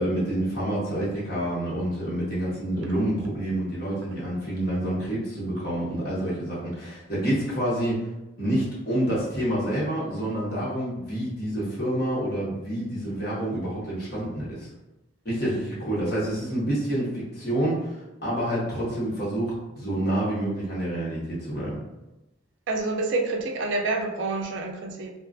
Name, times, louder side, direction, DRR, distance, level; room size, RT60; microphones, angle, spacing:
voice 1, 0.0-8.1 8.4-14.7 15.2-21.8, right 1 dB, 50° left, -7 dB, 1.0 m, -28 dB
voice 2, 22.7-25.1, right 3 dB, 65° right, 3 dB, 0.4 m, -28 dB
2.3 x 2.3 x 2.5 m, 0.98 s
head